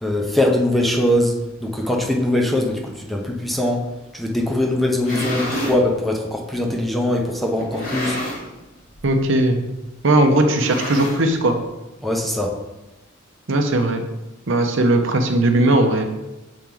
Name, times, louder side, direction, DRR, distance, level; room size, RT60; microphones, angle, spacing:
voice 1, 0.0-3.9 4.1-8.2 12.0-12.5, left 1 dB, ahead, 0 dB, 0.7 m, -21 dB
sound 1, 4.8-5.8 6.6-6.7 7.6-8.6 8.9-9.2 9.4-9.5 10.4-11.5, left 1 dB, 45° left, 1.7 m, -28 dB
voice 2, 9.0-9.6 10.0-11.6 13.5-14.0 14.5-16.0, right 1 dB, 70° right, 5 dB, 0.8 m, -18 dB
7.1 x 4.5 x 3.8 m, 1.0 s
head